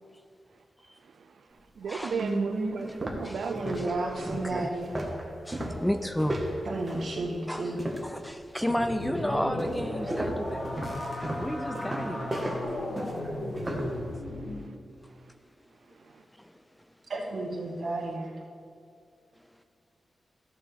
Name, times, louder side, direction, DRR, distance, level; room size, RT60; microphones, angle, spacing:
voice 1, 0.9-3.7 11.9-12.3 12.6-12.8 13.7-13.9 14.2-14.8 15.1-15.3 15.9-16.2, right 5 dB, 85° right, 6 dB, 0.4 m, -38 dB
sound 1, 1.6-1.7 2.2-2.3 2.7-8.2 8.6-9.0 9.6-14.0, right 1 dB, 15° right, 1.4 m, -35 dB
voice 2, 2.1-2.8 3.4-4.9 6.7-7.8 17.1-18.3, right 2 dB, 60° right, -2 dB, 1.8 m, -32 dB
voice 3, 4.3-4.7 5.5-6.4 7.5-7.7 8.0-10.7 11.3-12.3 12.7-12.8 13.5-13.7 16.4-16.5, equal, 5° left, 8 dB, 0.4 m, -32 dB
sound 2, 8.7-14.7, left 1 dB, 65° left, 2.2 m, -35 dB
14.0 x 7.2 x 3.4 m, 2.4 s
wide cardioid pair, 140°, 0 cm